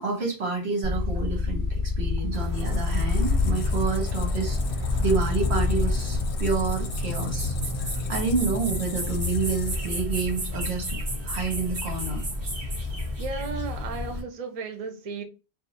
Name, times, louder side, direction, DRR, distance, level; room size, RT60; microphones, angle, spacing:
voice 1, 0.0-4.6 5.0-12.2, right 5 dB, 80° right, 1.5 m, -29 dB
sound 1, 0.8-6.2, left 4 dB, 20° right, 1.6 m, -27 dB
Squeak, 2.3-10.2, left 6 dB, 65° left, 0.7 m, -34 dB
sound 2, 2.3-14.2, left 1 dB, 60° right, 1.3 m, -31 dB
voice 2, 13.2-15.2, right 4 dB, 45° right, 0.6 m, -34 dB
2.9 x 2.3 x 3.9 m
omnidirectional pair, 1.1 m